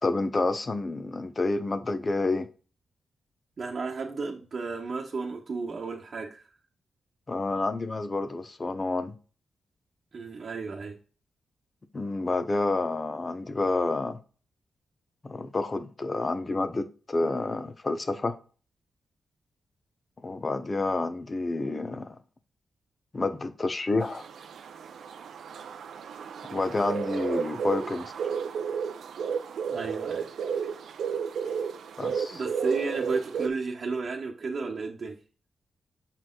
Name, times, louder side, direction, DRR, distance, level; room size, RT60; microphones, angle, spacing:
voice 1, 0.0-2.5 7.3-9.1 11.9-14.2 15.2-18.4 20.2-22.2 23.1-24.2 26.5-28.1 32.0-32.4, left 2 dB, 35° left, 0.8 m, -29 dB
voice 2, 3.6-6.5 10.1-11.0 29.7-30.3 32.3-35.2, right 4 dB, 55° right, 1.1 m, -33 dB
sound 1, 24.0-33.5, right 6 dB, 80° right, 0.6 m, -33 dB
6.4 x 4.3 x 3.8 m
cardioid pair, 70°, 0 cm